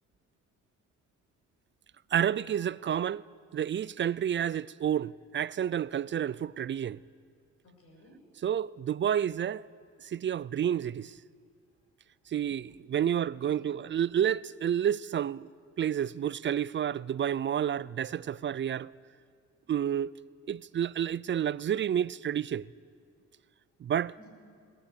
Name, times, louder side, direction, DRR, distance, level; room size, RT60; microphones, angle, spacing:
voice 1, 2.1-3.2 3.5-7.0 8.4-9.7 10.0-11.1 12.3-15.5 15.8-18.9 19.7-20.1 20.5-22.7 23.8-24.1, right 9 dB, 40° right, 0.4 m, -30 dB
voice 2, 7.6-8.2 13.0-13.9 24.2-24.3, left 2 dB, 50° left, 6.7 m, -56 dB
21.0 x 19.5 x 8.1 m
cardioid pair, 90°, 30 cm